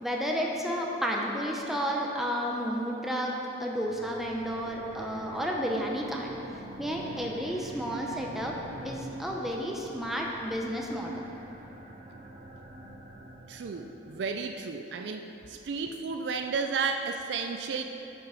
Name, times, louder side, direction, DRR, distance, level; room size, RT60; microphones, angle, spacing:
voice 1, 0.0-8.6 8.8-11.2, equal, ahead, -1 dB, 0.7 m, -32 dB
sound 1, 3.8-14.3, right 1 dB, 40° right, 1.0 m, -46 dB
voice 2, 13.5-17.8, right 5 dB, 70° right, 6 dB, 0.4 m, -33 dB
8.9 x 5.6 x 5.0 m, 2.9 s
head